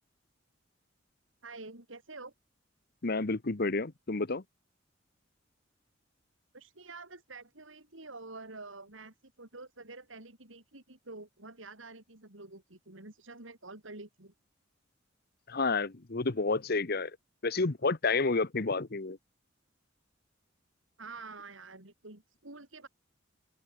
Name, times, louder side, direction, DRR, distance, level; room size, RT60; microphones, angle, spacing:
voice 1, 1.4-2.3 6.5-14.3 21.0-22.9, right 3 dB, 80° right, 4.1 m, -48 dB
voice 2, 3.0-4.4 15.5-17.1 17.4-19.2, left 3 dB, 50° left, 1.0 m, -30 dB
open air
head